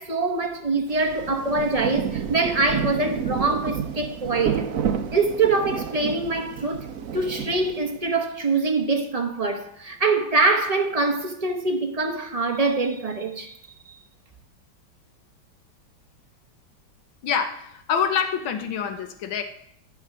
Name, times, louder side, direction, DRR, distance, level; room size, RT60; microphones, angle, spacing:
voice 1, 0.0-4.7 5.1-6.9 7.1-13.5, right 3 dB, 20° right, 1.2 m, -24 dB
Rain, 0.9-8.1, right 8 dB, 55° right, 1.0 m, -30 dB
voice 2, 17.2-19.4, left 7 dB, 80° left, 1.8 m, -26 dB
14.5 x 7.3 x 6.2 m
omnidirectional pair, 2.1 m